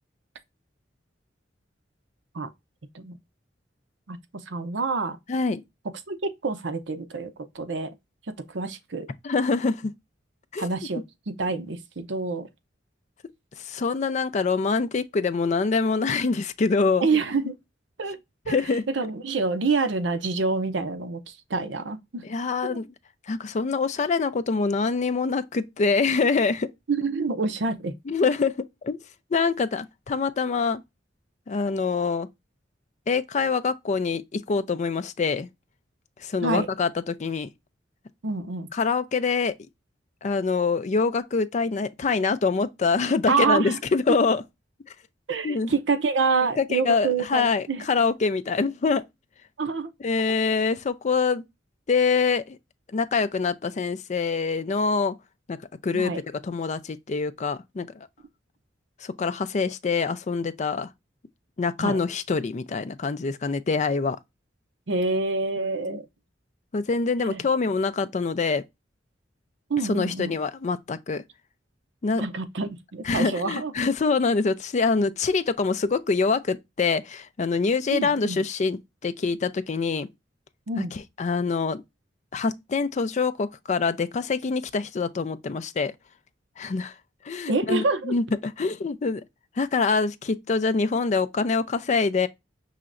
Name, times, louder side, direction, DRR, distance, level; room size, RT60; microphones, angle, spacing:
voice 1, 4.5-5.2 6.1-7.9 8.5-9.1 10.6-12.5 17.0-17.6 18.0-18.2 18.5-22.3 22.6-22.7 26.9-27.9 36.4-36.7 38.2-38.7 43.3-43.8 44.1-44.2 45.3-47.8 49.6-49.9 55.9-56.2 61.8-62.0 64.9-66.1 67.2-67.4 69.7-70.4 72.1-73.7 77.9-78.4 80.7-80.9 87.5-88.2, right 4 dB, 75° right, 0.7 m, -27 dB
voice 2, 5.3-5.6 9.2-9.9 10.5-10.7 13.6-17.1 18.5-18.8 22.3-22.9 23.3-26.7 28.1-28.5 28.8-29.0 29.3-30.8 31.5-32.3 33.1-35.5 36.2-37.5 38.7-39.5 40.2-44.4 45.4-45.7 46.6-49.0 50.0-51.5 51.9-52.6 52.9-55.2 55.5-55.6 55.8-56.1 56.4-57.9 59.0-60.9 61.6-64.2 65.9-66.0 66.7-68.6 69.9-71.2 72.0-72.2 73.1-80.1 80.8-81.8 82.3-85.9 86.6-86.9 87.3-89.2 89.6-92.3, left 4 dB, 40° left, 0.4 m, -25 dB
5.6 x 3.1 x 2.5 m
head